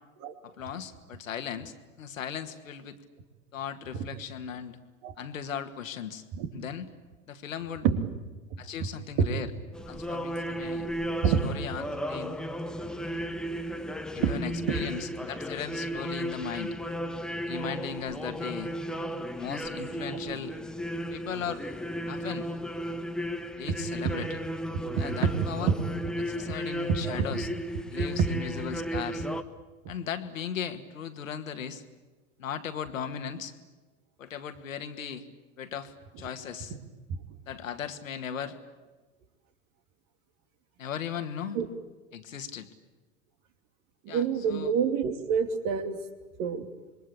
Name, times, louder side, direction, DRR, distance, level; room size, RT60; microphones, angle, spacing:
voice 1, 0.4-3.0 3.5-4.8 5.2-6.2 6.5-6.9 7.3-7.9 8.6-9.5 9.9-10.9 11.2-12.3 14.1-16.7 17.5-18.7 19.4-20.5 21.1-21.6 22.1-22.5 23.6-24.4 25.0-25.7 26.2-27.5 27.9-29.3 29.9-31.8 32.4-33.5 34.2-35.2 35.6-36.7 37.5-38.6 40.8-41.6 42.1-42.7 44.1-44.7, left 8 dB, 70° left, 8 dB, 2.1 m, -37 dB
sound 1, 9.7-29.4, equal, ahead, 1.2 m, -34 dB
voice 2, 44.0-46.0 46.4-46.7, right 7 dB, 45° right, 8 dB, 2.8 m, -27 dB
27.0 x 23.0 x 8.7 m, 1.2 s
figure-of-eight pair, 90°, 42 cm